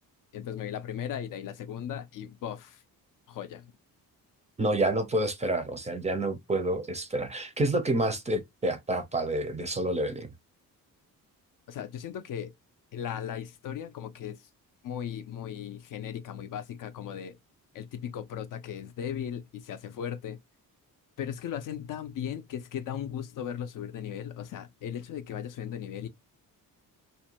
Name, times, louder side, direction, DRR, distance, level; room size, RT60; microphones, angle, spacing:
voice 1, 0.3-2.8 3.3-3.7 11.7-12.5 12.9-14.5 14.8-17.4 17.7-20.4 21.2-26.1, left 9 dB, 60° left, 0.5 m, -37 dB
voice 2, 4.6-10.3, right 1 dB, 20° right, 0.4 m, -28 dB
2.5 x 2.1 x 2.8 m
cardioid pair, 125°, 37 cm